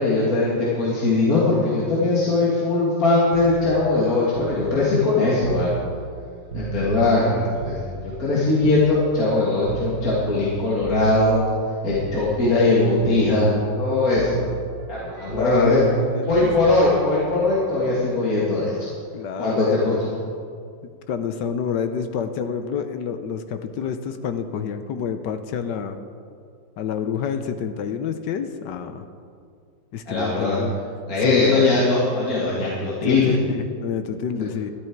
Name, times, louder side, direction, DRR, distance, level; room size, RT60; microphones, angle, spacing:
voice 1, 0.0-5.8 6.5-11.4 11.8-14.4 14.9-15.8 16.3-18.9 19.4-19.9 30.1-30.6 31.1-33.3 34.4-34.5, left 2 dB, 50° left, -7 dB, 2.3 m, -20 dB
sound 1, 3.3-7.3 7.6-11.6 11.9-12.7 13.0-13.9 14.1-18.1 19.4-19.6, right 5 dB, 50° right, 1.4 m, -36 dB
voice 2, 15.3-15.8 16.1-16.5 19.1-20.0 20.8-26.0 26.8-29.1 29.9-30.7 31.2-31.8 33.0-34.7, left 7 dB, 75° left, 9 dB, 1.3 m, -28 dB
12.5 x 12.0 x 4.6 m, 2.3 s
omnidirectional pair, 2.0 m